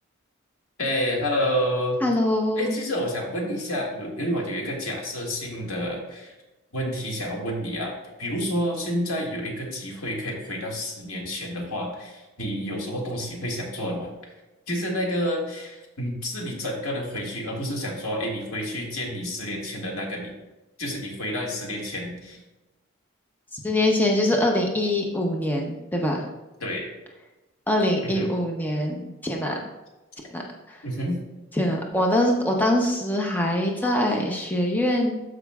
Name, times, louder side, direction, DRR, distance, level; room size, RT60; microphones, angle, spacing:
voice 1, 0.8-2.0 2.5-6.3 6.7-14.1 14.7-20.3 20.8-22.4 26.6-26.9 28.1-28.3 30.8-31.2, equal, 90° left, -1 dB, 1.9 m, -29 dB
voice 2, 2.0-2.7 23.5-26.2 27.7-29.6 30.3-30.4 30.7-30.8 31.6-35.1, left 1 dB, 10° left, 0 dB, 0.7 m, -23 dB
13.0 x 5.1 x 2.3 m, 1.1 s
head